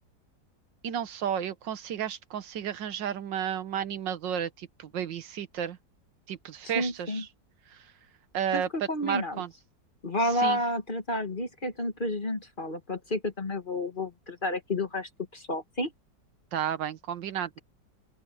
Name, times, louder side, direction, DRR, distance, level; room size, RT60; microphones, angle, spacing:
voice 1, 0.8-5.8 6.3-7.3 7.7-7.8 8.3-8.7 9.0-9.5 10.3-10.6 16.5-17.6, right 9 dB, 85° right, 1.8 m, -32 dB
voice 2, 6.7-7.2 8.5-9.4 10.0-15.9, left 1 dB, 30° left, 1.9 m, -30 dB
open air
omnidirectional pair, 1.9 m